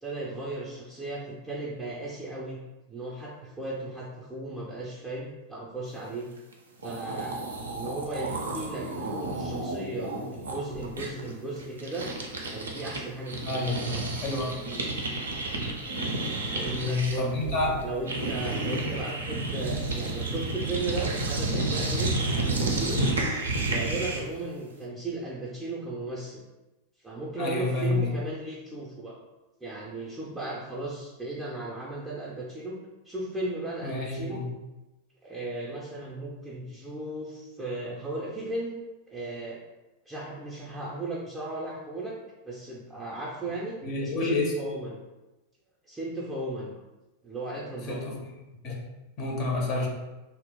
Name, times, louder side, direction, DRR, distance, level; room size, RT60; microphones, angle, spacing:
voice 1, 0.0-2.6 2.9-6.3 6.8-7.4 7.7-12.1 12.5-14.0 16.4-23.1 23.7-26.4 27.0-29.2 29.6-32.8 33.0-34.4 35.2-38.8 39.1-39.6 40.1-42.2 42.4-45.0 45.9-46.7 47.2-48.1 49.7-49.9, right 2 dB, 10° right, -6 dB, 0.4 m, -36 dB
sound 1, 6.5-6.6 6.8-13.0 13.3-24.4, right 2 dB, 70° right, 0.4 m, -31 dB
voice 2, 13.4-14.8 16.8-17.8 27.4-28.1 33.8-34.5 43.8-44.5 47.9-48.1 48.6-48.7 49.2-49.9, left 3 dB, 40° left, 0 dB, 0.5 m, -29 dB
2.2 x 2.0 x 3.5 m, 1.0 s
figure-of-eight pair, 90°, 0 cm